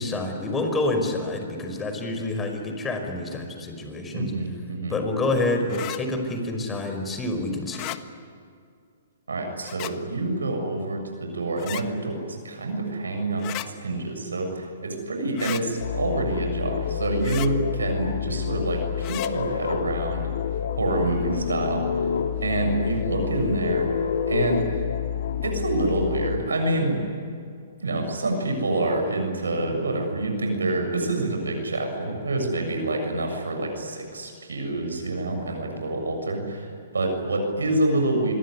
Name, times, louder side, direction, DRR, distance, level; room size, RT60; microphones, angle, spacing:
voice 1, 0.0-4.3 4.9-7.9, left 2 dB, 15° left, 5 dB, 5.2 m, -27 dB
voice 2, 4.1-5.0 9.3-12.2 12.4-20.3 20.8-22.1 22.4-23.9 24.3-24.7 25.4-27.0 27.8-36.7 36.9-38.3, right 2 dB, 90° right, 4 dB, 7.1 m, -27 dB
sound 1, 5.7-6.0 7.7-8.0 9.6-9.9 11.6-11.8 13.4-13.7 15.4-15.6 17.2-17.5 19.0-19.3, left 18 dB, 35° left, 1.4 m, -34 dB
sound 2, 15.8-26.4, left 8 dB, 70° left, 2.1 m, -28 dB
26.5 x 22.0 x 9.9 m, 2.3 s
hypercardioid pair, 130°, 0 cm